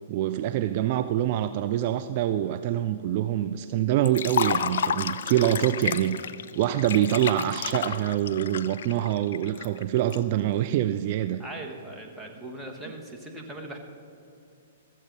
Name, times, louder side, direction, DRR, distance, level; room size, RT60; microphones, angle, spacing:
voice 1, 0.1-6.2 6.6-11.4, right 12 dB, 45° right, 10 dB, 0.4 m, -25 dB
Liquid, 4.1-10.2, left 7 dB, 65° left, 0.5 m, -31 dB
voice 2, 11.4-13.8, right 1 dB, 10° right, 0 dB, 1.5 m, -39 dB
14.0 x 7.4 x 5.4 m, 2.6 s
hypercardioid pair, 120°, 0 cm